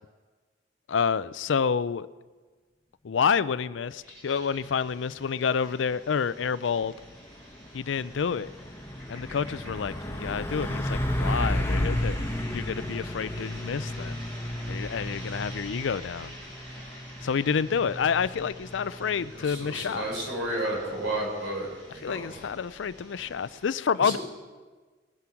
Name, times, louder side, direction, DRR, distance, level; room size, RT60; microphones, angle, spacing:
voice 1, 0.9-2.1 3.0-6.9 7.7-8.5 9.1-14.2 14.7-16.3 17.2-20.1 22.0-24.2, left 6 dB, 80° left, 17 dB, 0.4 m, -28 dB
sound 1, 4.0-23.6, equal, 70° right, 4.9 m, -48 dB
Truck, 6.8-21.1, left 1 dB, 15° left, 1.2 m, -33 dB
voice 2, 19.3-22.5 24.0-24.2, right 1 dB, 90° right, -1 dB, 5.4 m, -32 dB
20.5 x 9.8 x 5.8 m, 1.4 s
head